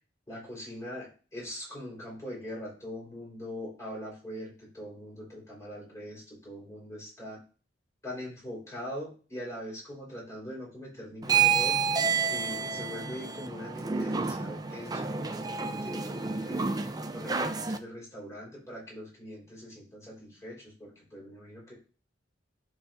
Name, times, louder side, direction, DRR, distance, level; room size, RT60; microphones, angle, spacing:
voice 1, 0.3-7.4 8.0-11.8 12.3-21.7, equal, 15° left, -4 dB, 4.0 m, -42 dB
sound 1, 11.2-17.8, right 6 dB, 20° right, 0.5 m, -29 dB
12.0 x 4.9 x 2.6 m, 0.36 s
head